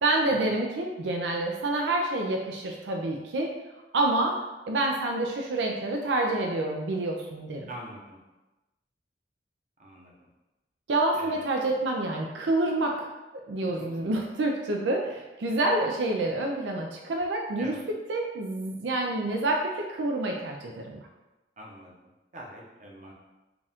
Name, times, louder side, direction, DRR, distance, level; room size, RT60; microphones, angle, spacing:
voice 1, 0.0-3.5 3.9-4.4 4.7-7.7 10.9-13.1 13.5-17.8 18.1-21.0, right 2 dB, 85° right, 1 dB, 0.5 m, -28 dB
voice 2, 7.7-8.2 9.8-10.1 11.1-11.5 13.6-13.9 15.5-15.6 17.6-17.8 21.6-23.1, right 1 dB, 45° right, -3 dB, 0.8 m, -45 dB
4.8 x 2.4 x 3.5 m, 1.1 s
head